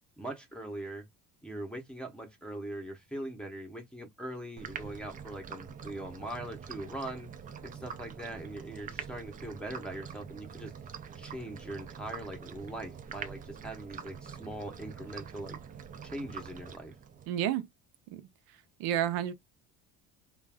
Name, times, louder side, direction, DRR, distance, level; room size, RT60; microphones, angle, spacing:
voice 1, 0.2-1.0 1.4-7.3 7.6-10.7 11.2-15.6 16.0-16.9, right 1 dB, 5° left, 0.7 m, -41 dB
sound 1, 4.6-17.3, right 7 dB, 25° right, 0.4 m, -45 dB
voice 2, 17.3-17.7 18.1-18.2 18.8-19.3, right 11 dB, 80° right, 0.6 m, -30 dB
2.4 x 2.3 x 3.3 m
cardioid pair, 150°, 35 cm